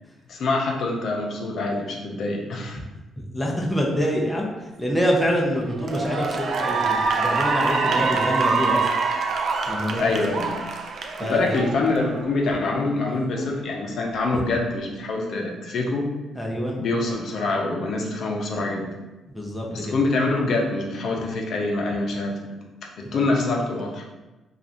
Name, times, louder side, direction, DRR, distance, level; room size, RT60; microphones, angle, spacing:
voice 1, 0.3-2.8 7.9-8.1 10.0-10.6 11.2-16.1 16.8-18.9 19.7-22.5 23.0-24.0, left 2 dB, 65° left, 0 dB, 0.6 m, -25 dB
voice 2, 3.3-4.5 4.8-8.9 9.7-10.0 11.2-11.6 16.3-16.8 19.3-19.9 23.0-23.2, equal, 5° left, -2 dB, 0.5 m, -25 dB
Cheering / Applause, 5.0-5.3 5.8-12.3, right 4 dB, 60° right, 0.3 m, -25 dB
3.0 x 2.4 x 2.5 m, 1.1 s
cardioid pair, 90°, 0 cm